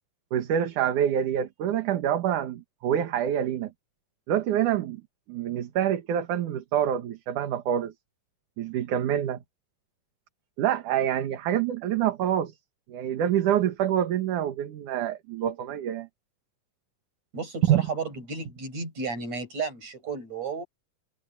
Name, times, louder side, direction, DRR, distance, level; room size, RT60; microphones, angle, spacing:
voice 1, 0.3-3.7 4.3-5.0 5.3-7.9 8.6-9.4 10.6-12.5 12.9-16.1 17.7-17.8, right 10 dB, 70° right, 3.0 m, -26 dB
voice 2, 17.3-20.6, right 4 dB, 50° right, 8.5 m, -33 dB
omnidirectional pair, 3.9 m